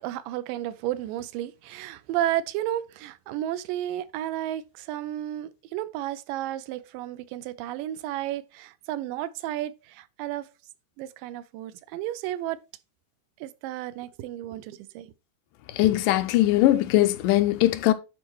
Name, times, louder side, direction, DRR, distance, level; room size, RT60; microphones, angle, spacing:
voice 1, 0.0-10.5 11.0-12.6 13.4-15.1, right 13 dB, 85° right, 2.3 m, -32 dB
voice 2, 15.7-17.9, left 15 dB, 85° left, 2.1 m, -20 dB
10.5 x 4.3 x 3.0 m
omnidirectional pair, 3.9 m